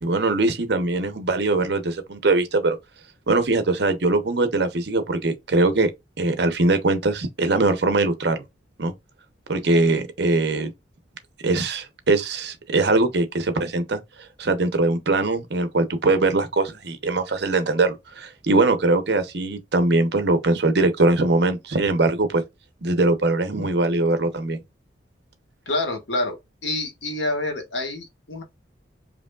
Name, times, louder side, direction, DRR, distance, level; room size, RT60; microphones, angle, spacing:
voice 1, 0.0-2.8 3.3-5.9 6.2-8.4 8.8-8.9 9.5-10.7 11.4-14.0 14.4-22.4 22.8-24.6, right 2 dB, 60° right, 0.8 m, -21 dB
voice 2, 25.7-26.4 26.6-28.4, left 2 dB, 70° left, 1.4 m, -27 dB
5.0 x 2.9 x 2.3 m
head